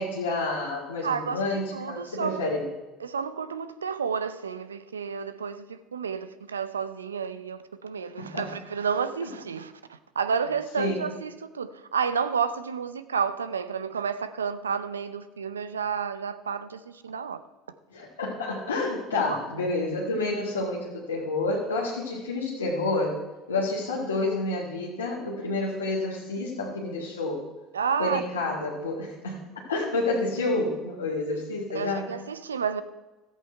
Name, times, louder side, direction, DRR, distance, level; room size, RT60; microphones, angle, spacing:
voice 1, 0.0-2.6 8.2-8.5 9.2-9.3 10.8-11.0 17.9-23.2 23.5-27.4 28.0-29.4 29.7-32.1, left 2 dB, 85° left, 1.8 m, -29 dB
voice 2, 1.0-2.5 3.0-17.4 19.1-19.4 27.7-28.6 31.7-32.8, right 6 dB, 85° right, 0.5 m, -31 dB
13.5 x 8.3 x 4.4 m
hypercardioid pair, 65°, 0 cm